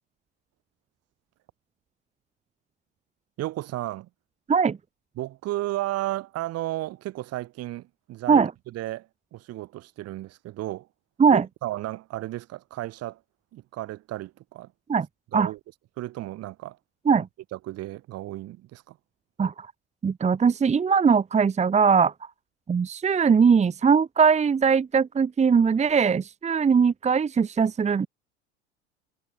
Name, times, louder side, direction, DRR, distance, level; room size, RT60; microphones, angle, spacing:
voice 1, 3.4-4.1 5.2-10.9 11.3-13.2 13.5-14.7 15.3-15.6 16.0-16.8 17.1-17.2 17.5-19.0, right 16 dB, 45° right, 2.9 m, -34 dB
voice 2, 20.0-22.1 22.7-28.1, right 6 dB, 20° right, 1.3 m, -20 dB
figure-of-eight pair, 75°, 35 cm